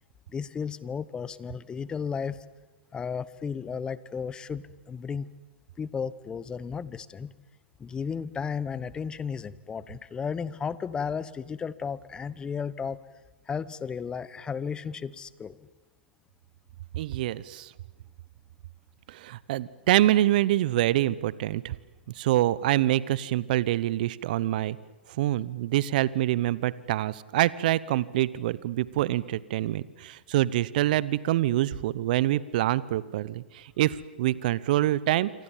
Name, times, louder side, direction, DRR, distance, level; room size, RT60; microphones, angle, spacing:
voice 1, 0.3-2.4 2.9-5.3 5.8-7.3 7.8-13.0 13.5-15.7, left 6 dB, 15° left, 18 dB, 0.9 m, -34 dB
voice 2, 16.9-17.7 19.1-21.8 22.1-24.8 25.1-35.3, right 14 dB, 50° right, 20 dB, 0.9 m, -26 dB
28.0 x 25.0 x 7.4 m, 1.2 s
hypercardioid pair, 120°, 6 cm